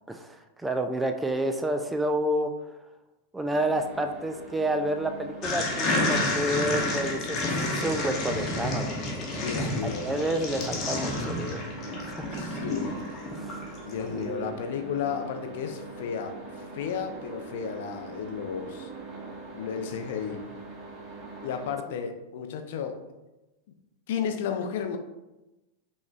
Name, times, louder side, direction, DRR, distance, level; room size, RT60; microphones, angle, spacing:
voice 1, 0.1-2.5 3.3-11.6 12.1-12.5 13.3-13.7 14.1-14.6, right 1 dB, 10° right, 6 dB, 0.3 m, -30 dB
sound 1, 3.5-21.7, right 3 dB, 35° right, 0.8 m, -42 dB
sound 2, 5.4-14.0, left 2 dB, 30° left, 1.0 m, -30 dB
voice 2, 9.4-10.1 12.3-13.0 13.9-16.4 16.7-18.9 19.5-20.4 21.4-23.0 24.1-25.0, left 7 dB, 55° left, 6 dB, 0.5 m, -33 dB
5.7 x 3.1 x 2.4 m, 1.0 s
figure-of-eight pair, 90°, 0 cm